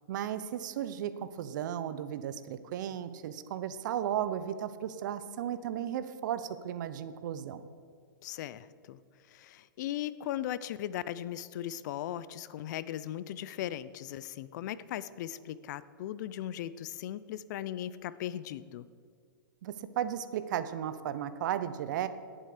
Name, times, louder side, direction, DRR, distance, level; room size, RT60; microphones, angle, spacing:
voice 1, 0.1-7.6 19.6-22.1, right 10 dB, 60° right, 12 dB, 0.8 m, -35 dB
voice 2, 8.2-9.0 9.3-18.9, left 12 dB, 55° left, 17 dB, 0.6 m, -38 dB
18.0 x 7.5 x 5.0 m, 2.2 s
hypercardioid pair, 125°, 12 cm